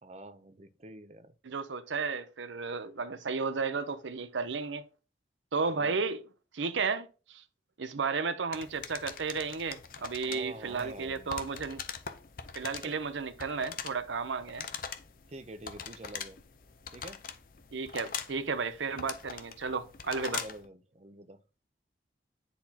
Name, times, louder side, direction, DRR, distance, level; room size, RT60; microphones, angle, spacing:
voice 1, 0.0-1.3 5.7-6.0 10.2-11.5 12.6-12.9 15.3-16.4 16.9-17.2 20.4-21.4, right 1 dB, 35° right, 0.6 m, -47 dB
voice 2, 1.4-4.8 5.5-6.2 6.5-7.4 7.8-11.8 12.5-14.7 17.7-20.4, right 4 dB, 80° right, 0.7 m, -33 dB
sound 1, 8.5-20.7, left 7 dB, 45° left, 0.6 m, -43 dB
9.7 x 4.1 x 2.8 m
head